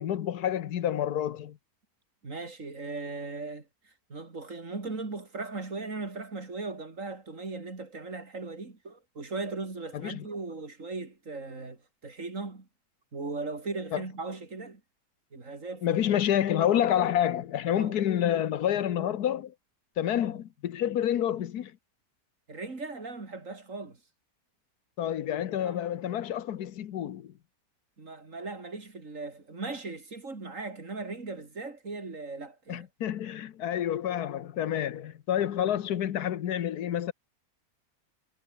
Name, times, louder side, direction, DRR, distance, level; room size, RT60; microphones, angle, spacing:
voice 1, 0.0-1.6 9.9-10.3 13.9-14.0 15.8-19.5 20.0-21.7 25.0-27.3 32.7-37.1, left 10 dB, 90° left, 1.5 m, -28 dB
voice 2, 2.2-12.7 13.1-14.8 15.3-16.0 17.8-18.0 20.2-20.3 22.5-24.0 25.6-25.8 28.0-32.9, right 3 dB, 55° right, 3.6 m, -38 dB
omnidirectional pair, 1.6 m